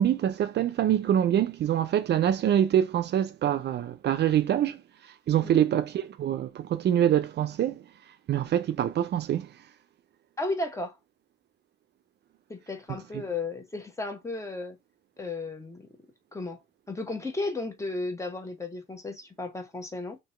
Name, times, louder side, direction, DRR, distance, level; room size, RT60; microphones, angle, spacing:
voice 1, 0.0-4.8 5.3-7.8 8.3-9.5, right 10 dB, 60° right, 0.5 m, -25 dB
voice 2, 10.4-11.0 12.5-14.8 15.2-15.9 16.3-16.6 16.9-20.2, left 2 dB, 15° left, 1.0 m, -34 dB
2.9 x 2.8 x 4.3 m
cardioid pair, 90°, 20 cm